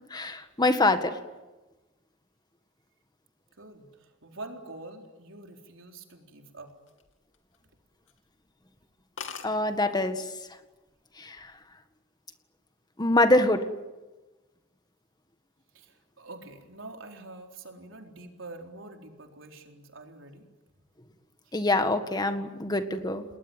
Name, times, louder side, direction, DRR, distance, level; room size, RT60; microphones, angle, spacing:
voice 1, 0.1-1.2 9.4-10.3 11.2-11.5 13.0-13.7 21.5-23.2, left 2 dB, 20° left, 8 dB, 1.8 m, -25 dB
voice 2, 3.6-6.7 15.7-20.5, right 2 dB, 85° right, 3 dB, 4.1 m, -45 dB
sound 1, 6.7-7.7 8.1-8.3 8.6-8.7 8.9-9.0 9.2-9.5 10.4-10.8 11.1-11.5, left 6 dB, 75° left, 2.9 m, -42 dB
29.0 x 20.5 x 9.1 m, 1.1 s
head